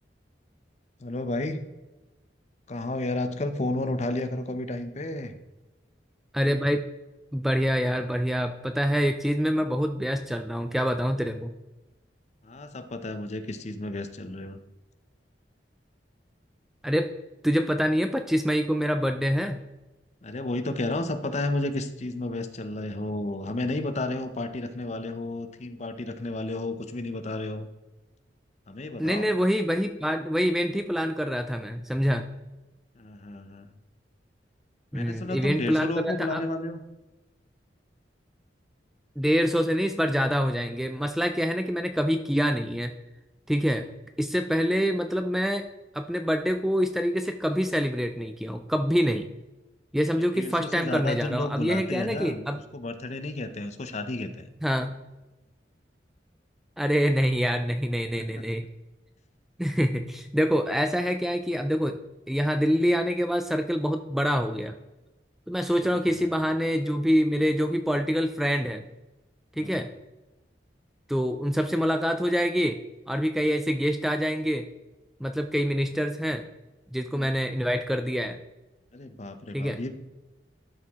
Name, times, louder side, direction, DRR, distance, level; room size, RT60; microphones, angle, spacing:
voice 1, 1.0-1.6 2.7-5.4 12.4-14.6 20.2-27.7 28.7-29.3 33.0-33.7 34.9-36.8 50.3-52.4 52.7-54.5 58.2-58.3 66.1-66.3 69.6-69.8 77.1-77.3 78.9-79.9, left 2 dB, 40° left, 9 dB, 0.6 m, -32 dB
voice 2, 6.3-6.8 7.3-11.5 16.8-17.1 17.4-19.6 29.0-32.3 34.9-36.4 39.2-42.9 43.5-43.9 44.2-45.7 45.9-49.3 49.9-52.6 54.6-55.0 56.8-58.6 59.6-62.0 62.3-64.7 65.5-68.8 69.6-69.9 71.1-72.8 73.1-74.7 75.2-76.4 76.9-78.4 79.5-79.8, equal, ahead, 7 dB, 0.3 m, -26 dB
12.0 x 4.8 x 3.5 m, 1.1 s
head